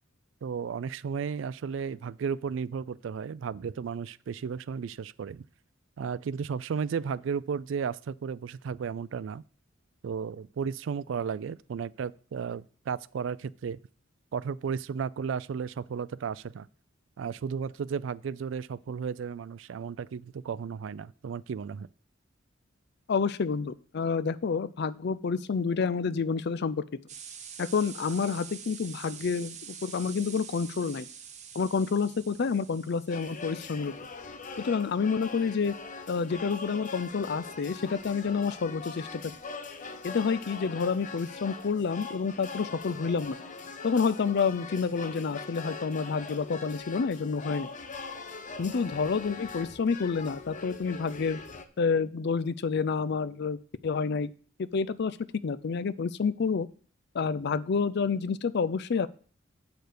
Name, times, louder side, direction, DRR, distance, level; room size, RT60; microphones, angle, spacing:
voice 1, 0.4-5.4 6.0-9.4 10.0-13.8 14.3-16.7 17.2-21.9, right 6 dB, 70° right, 0.4 m, -34 dB
voice 2, 23.1-26.8 27.6-31.1 31.5-33.9 34.6-35.7 36.1-39.3 40.0-43.4 43.8-47.7 48.6-51.4 51.8-53.6 53.8-54.3 54.6-55.2 55.4-56.7 57.1-59.1, left 5 dB, 60° left, 0.5 m, -29 dB
sound 1, 27.1-33.7, right 7 dB, 40° right, 1.0 m, -46 dB
sound 2, 33.1-51.7, left 4 dB, 40° left, 0.8 m, -42 dB
7.8 x 6.6 x 5.1 m
head